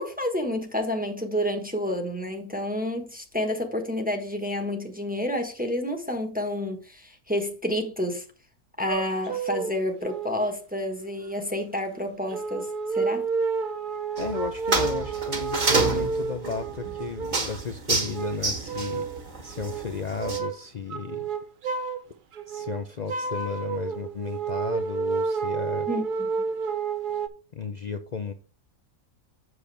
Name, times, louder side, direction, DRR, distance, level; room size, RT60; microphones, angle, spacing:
voice 1, 0.0-8.2 8.8-13.3 25.9-26.3, left 1 dB, 5° right, 1.1 m, -29 dB
sound 1, 8.9-9.7 10.0-10.5 11.2-11.3 12.3-17.5 17.9-19.2 19.5-19.9 20.2-20.6 20.9-22.1 22.3-27.3, right 5 dB, 50° right, 0.6 m, -30 dB
voice 2, 14.2-19.1 19.4-21.3 22.5-25.9 27.5-28.3, left 5 dB, 65° left, 0.4 m, -34 dB
sound 2, 14.2-20.4, right 3 dB, 35° right, 1.3 m, -29 dB
8.0 x 6.7 x 3.3 m
omnidirectional pair, 1.5 m